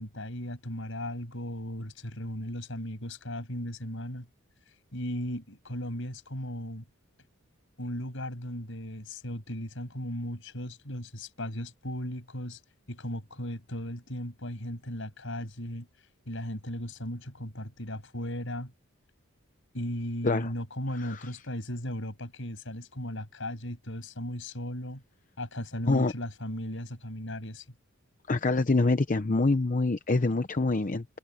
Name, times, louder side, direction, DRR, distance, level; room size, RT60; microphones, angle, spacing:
voice 1, 0.0-4.3 4.9-6.8 7.8-12.6 12.9-15.9 16.3-18.7 19.7-25.0 25.4-27.7, left 1 dB, 60° left, 7.3 m, -36 dB
voice 2, 28.3-31.0, left 3 dB, 35° left, 0.7 m, -25 dB
head